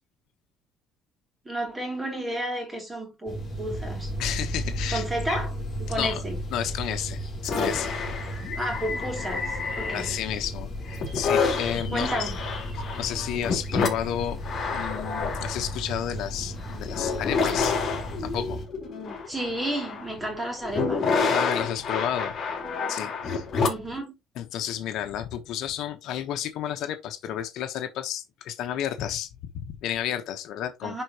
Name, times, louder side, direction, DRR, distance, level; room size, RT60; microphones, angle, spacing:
voice 1, 1.4-4.1 4.9-5.5 5.8-6.4 8.5-10.1 11.9-12.4 19.3-21.0 23.6-24.2 30.8-31.0, right 1 dB, 10° right, 3.2 m, -32 dB
sound 1, 3.3-18.7, equal, 20° left, 4.6 m, -35 dB
voice 2, 4.2-5.4 5.9-6.2 6.5-7.9 9.9-12.3 12.9-14.4 14.7-17.8 18.2-18.6 21.3-22.4 22.9-23.4 24.4-29.3 29.5-31.0, left 10 dB, 65° left, 1.2 m, -32 dB
sound 2, 7.4-10.4 10.9-24.0, left 4 dB, 35° left, 4.2 m, -29 dB
10.5 x 4.5 x 3.1 m
cardioid pair, 145°, 0 cm